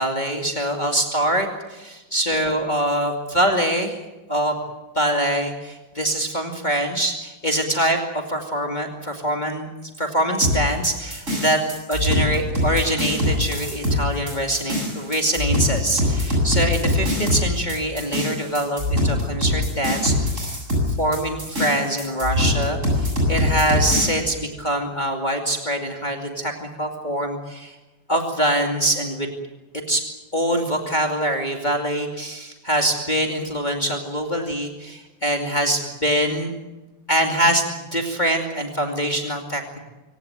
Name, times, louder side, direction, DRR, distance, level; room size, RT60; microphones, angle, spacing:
voice 1, 0.0-3.9 4.3-4.6 4.9-9.7 10.0-11.6 11.9-27.7 28.1-29.3 29.9-30.0 30.3-36.5 37.1-39.8, right 1 dB, 25° left, 2 dB, 2.6 m, -24 dB
sound 1, 10.4-24.1, left 1 dB, 40° right, 8.3 m, -23 dB
25.0 x 17.5 x 9.1 m, 1.1 s
omnidirectional pair, 2.1 m